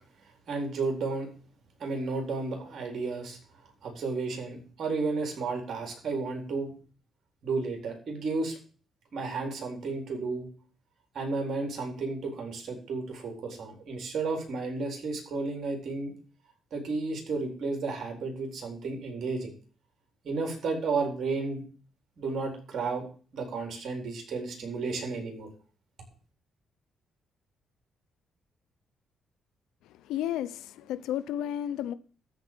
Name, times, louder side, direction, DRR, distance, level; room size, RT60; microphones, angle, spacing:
voice 1, 0.5-1.3 1.8-3.4 3.8-6.7 7.4-8.6 9.1-10.5 11.1-16.1 16.7-19.5 20.2-21.6 22.2-23.1 23.3-25.5, right 3 dB, 60° right, 4.0 m, -32 dB
voice 2, 29.9-31.9, left 11 dB, 90° left, 0.7 m, -32 dB
13.5 x 4.6 x 7.5 m
cardioid pair, 90°, 0 cm